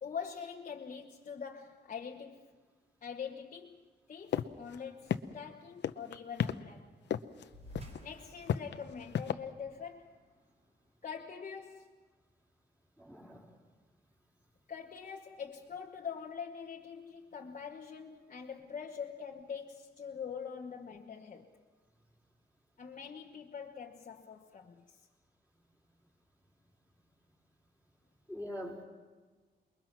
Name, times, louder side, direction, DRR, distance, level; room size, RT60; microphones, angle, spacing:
voice 1, 0.0-2.6 3.0-3.8 4.1-6.9 8.0-10.2 11.0-12.0 14.7-21.5 22.8-25.0, left 6 dB, 45° left, 1.2 m, -44 dB
sound 1, 4.3-4.4 4.7-4.8 5.1-5.5 5.8-6.5 7.1-7.4 7.7-8.0 8.5-9.3, left 9 dB, 75° left, 0.8 m, -31 dB
sound 2, 7.5-12.3, equal, 35° right, 4.1 m, -55 dB
voice 2, 13.0-13.6 28.3-28.8, equal, 10° right, 4.0 m, -43 dB
28.0 x 22.0 x 6.1 m
wide cardioid pair, 170°, 18 cm